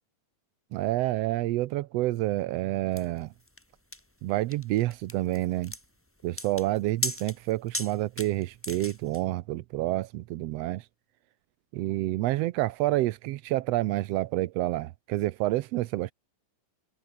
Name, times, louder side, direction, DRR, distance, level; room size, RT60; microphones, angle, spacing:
voice 1, 0.7-3.3 4.2-5.7 6.2-10.8 11.7-16.1, right 17 dB, 80° right, 1.4 m, -28 dB
sound 1, 3.0-9.2, left 1 dB, 10° left, 0.7 m, -37 dB
omnidirectional pair, 3.6 m